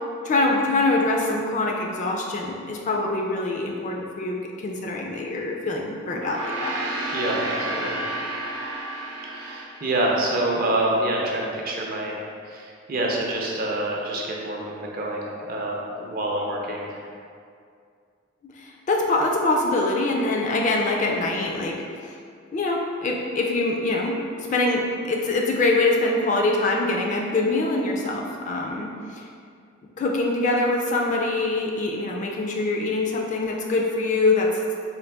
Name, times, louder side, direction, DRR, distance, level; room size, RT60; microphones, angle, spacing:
voice 1, 0.2-6.8 18.4-21.8 22.0-22.1 22.5-24.2 24.5-29.2 30.0-34.5, left 2 dB, 35° left, 0 dB, 0.3 m, -24 dB
Gong, 6.0-10.7, right 1 dB, 90° right, 0.7 m, -32 dB
voice 2, 7.1-8.0 9.3-17.0, right 1 dB, 45° right, -2 dB, 0.5 m, -27 dB
3.8 x 2.5 x 3.3 m, 2.3 s
head